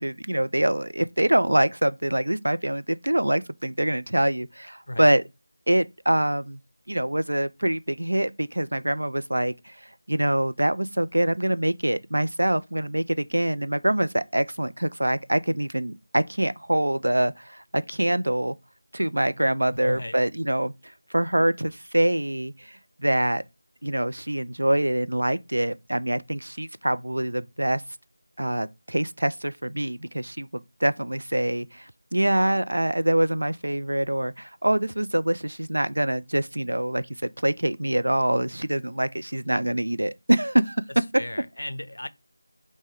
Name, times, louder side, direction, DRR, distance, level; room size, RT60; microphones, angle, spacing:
voice 1, 0.0-5.2 5.7-6.6 6.9-9.8 10.1-18.6 18.9-20.7 21.1-23.4 23.8-27.8 28.4-37.1 37.4-40.8 41.1-41.2, right 1 dB, 80° right, 0.4 m, -25 dB
voice 2, 19.7-20.1 41.2-42.1, left 1 dB, 75° left, 0.4 m, -35 dB
5.9 x 2.2 x 3.5 m
figure-of-eight pair, 170°, 0 cm